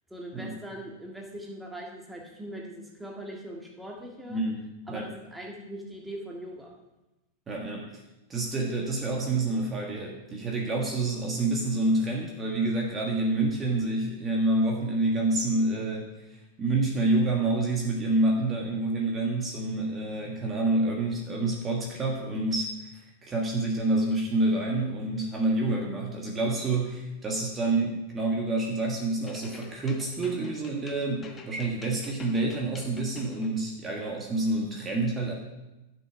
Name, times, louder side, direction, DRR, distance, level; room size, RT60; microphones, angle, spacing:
voice 1, 0.1-4.4 4.9-6.7, right 1 dB, 5° right, -1 dB, 1.8 m, -41 dB
voice 2, 4.3-4.6 4.9-5.1 7.5-8.0 8.3-16.3 16.6-35.3, right 2 dB, 20° right, -1 dB, 1.6 m, -28 dB
sound 1, 29.3-33.5, left 4 dB, 20° left, 1.2 m, -47 dB
11.5 x 6.3 x 4.8 m, 0.98 s
figure-of-eight pair, 95°, 0 cm